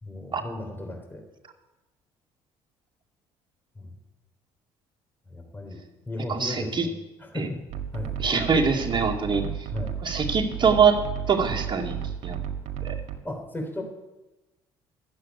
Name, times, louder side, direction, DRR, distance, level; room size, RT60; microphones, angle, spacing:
voice 1, 0.0-1.2 3.8-3.9 5.3-5.8 6.1-6.9 7.2-7.6 7.9-8.1 9.4-9.9 13.2-13.8, left 1 dB, 15° left, 2 dB, 3.8 m, -35 dB
voice 2, 6.3-6.9 7.4-7.5 8.2-9.4 10.0-11.0 11.3-12.0 12.2-12.4 12.8-13.0, right 5 dB, 40° right, 1 dB, 2.3 m, -23 dB
sound 1, 7.7-13.2, right 9 dB, 65° right, 1.8 m, -33 dB
12.5 x 7.9 x 9.5 m, 1.0 s
hypercardioid pair, 65°, 13 cm